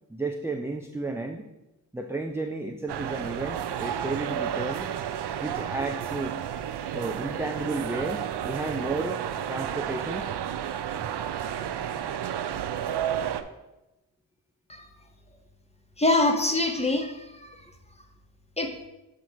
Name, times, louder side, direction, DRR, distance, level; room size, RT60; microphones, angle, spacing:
voice 1, 0.1-1.5 1.9-4.9 5.4-6.4 6.9-9.2 9.5-10.3, right 2 dB, 5° right, 4 dB, 0.5 m, -33 dB
sound 1, 2.9-13.4, right 9 dB, 60° right, 0.6 m, -31 dB
voice 2, 16.0-17.6 18.6-18.7, left 2 dB, 15° left, 4 dB, 1.2 m, -25 dB
7.5 x 3.8 x 4.7 m, 0.97 s
supercardioid pair, 40°, 45 cm